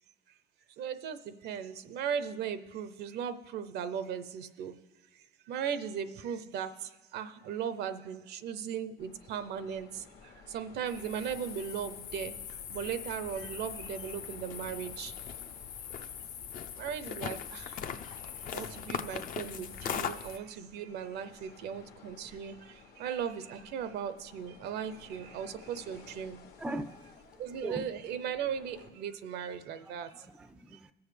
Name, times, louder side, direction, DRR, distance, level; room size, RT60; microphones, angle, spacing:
voice 1, 0.8-4.7 5.5-6.7 7.1-10.0 10.5-12.3 12.7-15.1 16.8-17.7 18.5-22.6 23.0-26.4 27.4-30.1, right 8 dB, 75° right, 12 dB, 0.6 m, -37 dB
sound 1, 9.0-28.9, left 5 dB, 70° left, 1.2 m, -56 dB
sound 2, 10.9-20.4, left 8 dB, 55° left, 0.5 m, -40 dB
voice 2, 26.6-27.9 29.8-30.9, right 1 dB, 5° right, 12 dB, 0.4 m, -41 dB
17.5 x 7.1 x 3.3 m, 1.2 s
cardioid pair, 110°, 17 cm